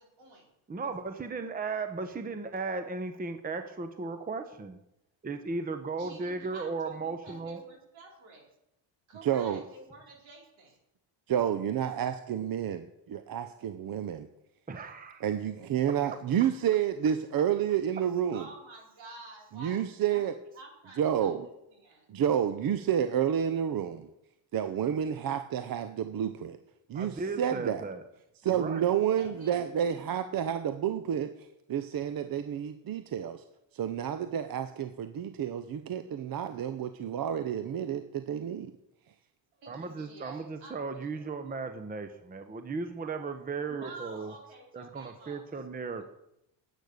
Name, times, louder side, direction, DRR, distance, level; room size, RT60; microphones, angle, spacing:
voice 1, 0.2-0.5 6.0-8.5 9.1-10.8 18.3-20.2 20.5-22.1 29.2-30.1 39.5-41.3 43.7-45.6 46.0-46.1, right 3 dB, 70° right, -1 dB, 4.9 m, -50 dB
voice 2, 0.7-4.8 5.2-7.6 14.7-15.2 26.9-28.0 28.5-28.8 39.7-44.3 44.7-46.0, right 4 dB, 20° right, 9 dB, 0.8 m, -36 dB
voice 3, 9.2-9.6 11.3-14.3 15.2-18.4 19.5-20.3 21.0-21.5 22.1-24.1 24.5-26.6 26.9-27.9 28.4-31.3 31.7-33.4 33.7-38.7, right 9 dB, 45° right, 10 dB, 0.8 m, -30 dB
10.5 x 8.3 x 6.6 m, 0.83 s
cardioid pair, 110°, 48 cm